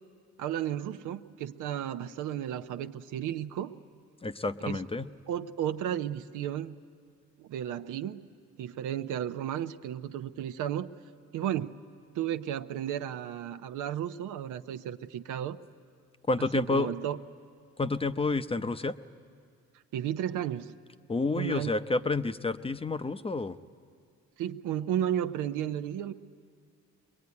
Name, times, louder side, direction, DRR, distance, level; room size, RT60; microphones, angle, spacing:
voice 1, 0.4-3.7 4.6-4.9 5.3-6.8 7.4-8.2 8.6-10.9 11.3-11.8 12.1-15.6 16.4-17.2 19.9-20.7 21.4-21.8 24.4-26.1, right 10 dB, 85° right, 10 dB, 0.8 m, -33 dB
voice 2, 4.2-5.1 16.3-16.9 17.8-18.9 21.1-23.6, left 3 dB, 20° left, 11 dB, 0.6 m, -29 dB
22.5 x 22.0 x 9.6 m, 2.2 s
cardioid pair, 90°, 30 cm